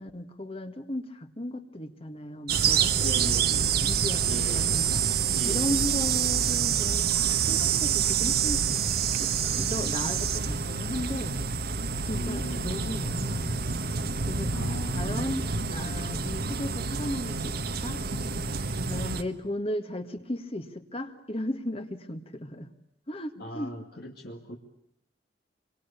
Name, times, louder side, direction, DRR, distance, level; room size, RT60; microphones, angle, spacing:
voice 1, 0.0-5.2 5.5-7.1 7.5-8.7 9.2-9.3 9.6-11.3 12.0-13.7 14.2-18.0 18.9-22.7 23.1-23.7, left 1 dB, 30° left, 9 dB, 1.9 m, -36 dB
sound 1, 2.5-19.2, right 7 dB, 55° right, 1.5 m, -27 dB
voice 2, 3.0-3.6 4.3-4.7 5.3-5.7 12.0-12.6 14.5-15.0 17.9-18.2 23.4-24.6, equal, 60° left, 1 dB, 2.3 m, -38 dB
26.0 x 24.0 x 8.5 m, 0.73 s
head